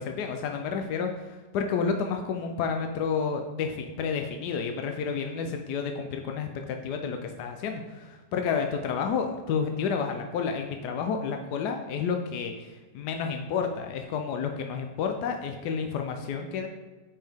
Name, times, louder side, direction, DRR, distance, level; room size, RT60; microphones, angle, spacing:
voice 1, 0.0-16.7, left 6 dB, 80° left, 4 dB, 1.2 m, -30 dB
8.5 x 5.5 x 3.5 m, 1.3 s
omnidirectional pair, 1.7 m